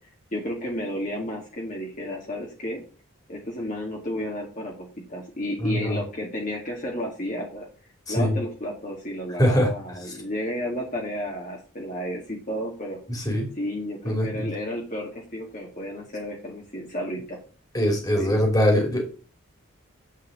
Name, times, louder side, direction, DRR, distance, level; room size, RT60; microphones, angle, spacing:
voice 1, 0.3-2.8 3.3-7.7 8.1-13.0 13.6-17.4 18.1-18.4, left 1 dB, 40° left, -2 dB, 2.1 m, -32 dB
voice 2, 17.7-19.1, equal, 15° left, 2 dB, 2.7 m, -21 dB
9.2 x 4.8 x 7.3 m, 0.38 s
head